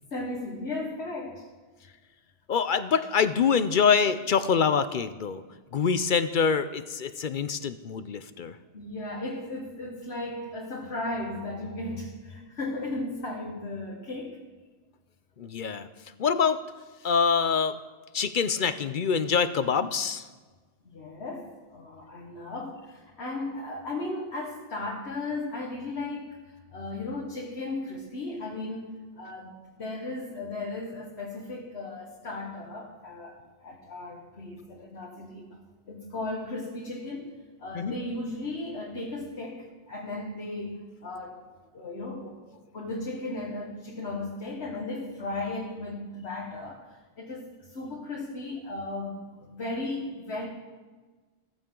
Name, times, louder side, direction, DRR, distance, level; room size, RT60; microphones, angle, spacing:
voice 1, 0.1-1.5 8.7-14.4 20.8-35.6 35.9-37.3 37.6-41.5 41.7-42.4 42.7-50.5, left 2 dB, 90° left, -2 dB, 1.7 m, -36 dB
voice 2, 2.5-5.4 5.7-8.5 15.4-15.9 16.2-16.6 17.0-17.8 18.1-20.3 37.7-37.9, left 6 dB, 55° left, 12 dB, 0.7 m, -25 dB
15.0 x 14.5 x 3.8 m, 1.3 s
omnidirectional pair, 1.1 m